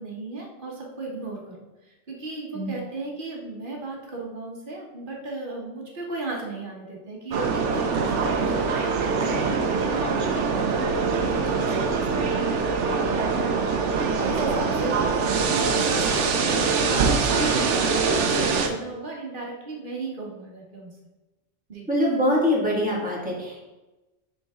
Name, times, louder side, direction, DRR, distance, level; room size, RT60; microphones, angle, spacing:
voice 1, 0.0-20.9 21.7-21.9, right 3 dB, 45° right, -2 dB, 1.3 m, -35 dB
sound 1, 7.3-18.7, right 5 dB, 80° right, 1.0 m, -23 dB
voice 2, 21.9-23.7, left 1 dB, 5° right, -5 dB, 1.8 m, -24 dB
6.9 x 3.9 x 3.6 m, 1.1 s
omnidirectional pair, 1.2 m